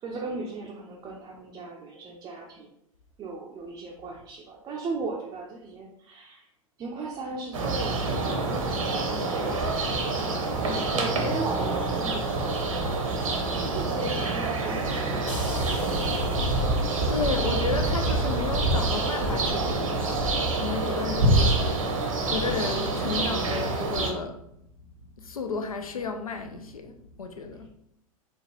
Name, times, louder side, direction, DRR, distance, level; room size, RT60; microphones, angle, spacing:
voice 1, 0.0-2.7 3.2-6.4 6.8-9.8 10.2-13.1 13.6-15.6, right 3 dB, 20° right, 0.5 m, -37 dB
sound 1, 7.5-24.1, right 2 dB, 70° right, 0.8 m, -26 dB
sound 2, 15.3-18.8, left 1 dB, 35° left, 1.5 m, -38 dB
voice 2, 17.1-21.8 22.3-24.5 25.2-27.7, left 4 dB, 75° left, 0.5 m, -33 dB
4.4 x 2.2 x 3.1 m
figure-of-eight pair, 90°, 18 cm